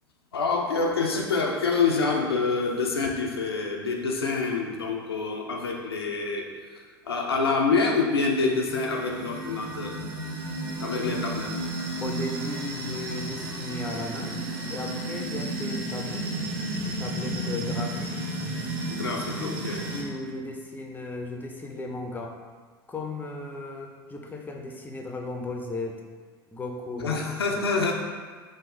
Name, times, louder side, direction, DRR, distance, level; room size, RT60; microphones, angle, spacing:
voice 1, 0.3-6.4 6.7-9.9 10.8-11.5 18.9-19.8 27.0-27.9, left 4 dB, 90° left, 0 dB, 0.4 m, -26 dB
sound 1, 8.1-20.0, right 1 dB, 65° right, 0.7 m, -33 dB
voice 2, 12.0-14.4 14.7-16.3 16.8-18.1 19.3-22.4 22.9-26.0 26.5-27.2 27.5-27.6, left 2 dB, 15° left, 2 dB, 0.4 m, -36 dB
3.0 x 2.0 x 3.6 m, 1.5 s
hypercardioid pair, 75°, 13 cm